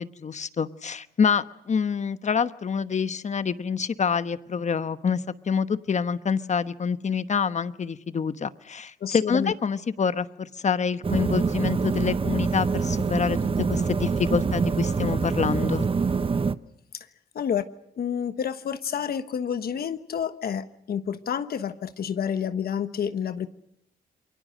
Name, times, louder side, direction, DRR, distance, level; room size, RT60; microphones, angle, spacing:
voice 1, 0.0-13.4 13.7-15.9, left 6 dB, 45° left, 13 dB, 1.1 m, -26 dB
voice 2, 9.0-9.5 16.9-17.1 17.3-17.6 18.0-23.5, left 8 dB, 70° left, 11 dB, 1.2 m, -29 dB
sound 1, 11.0-16.5, right 5 dB, 35° right, 0.9 m, -25 dB
28.0 x 22.5 x 6.5 m, 0.74 s
cardioid pair, 85°, 17 cm